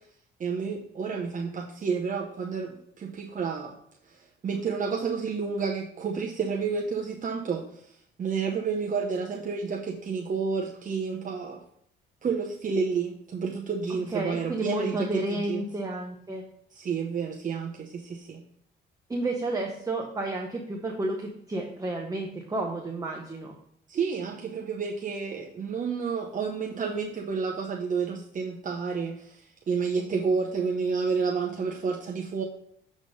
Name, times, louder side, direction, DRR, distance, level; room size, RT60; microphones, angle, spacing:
voice 1, 0.4-3.7 4.1-11.6 12.2-15.6 16.7-18.4 23.9-32.4, right 5 dB, 40° right, 0 dB, 0.8 m, -30 dB
voice 2, 14.1-16.4 19.1-23.5, right 2 dB, 15° right, 1 dB, 1.0 m, -31 dB
7.7 x 3.7 x 5.1 m, 0.70 s
cardioid pair, 90°, 20 cm